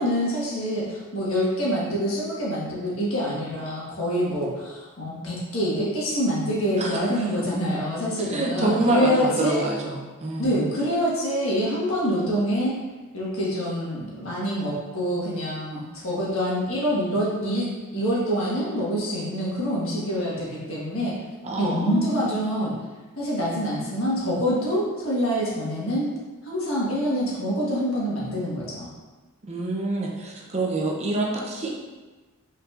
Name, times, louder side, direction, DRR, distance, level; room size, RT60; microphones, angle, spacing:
voice 1, 0.0-9.6 10.4-12.8 13.1-21.2 21.6-22.7 23.2-26.1 26.4-28.9, equal, 65° left, -6 dB, 1.4 m, -26 dB
voice 2, 8.2-10.6 21.4-22.2 29.5-31.7, right 2 dB, 30° right, -2 dB, 0.6 m, -27 dB
5.4 x 3.9 x 2.4 m, 1.3 s
head